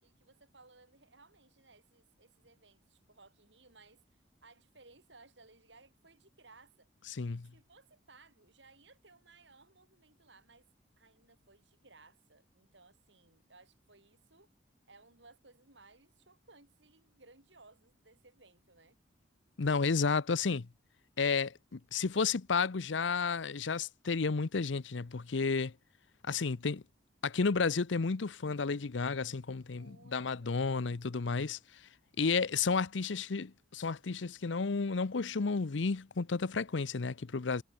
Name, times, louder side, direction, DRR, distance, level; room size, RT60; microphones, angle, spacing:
voice 1, 0.0-6.9 7.5-10.7 11.0-14.5 14.9-19.0 29.7-31.3, right 3 dB, 75° right, 8.0 m, -61 dB
voice 2, 7.1-7.5 19.6-20.7 21.2-25.7 26.2-26.8 27.2-31.6 32.2-37.6, left 4 dB, 85° left, 0.7 m, -32 dB
head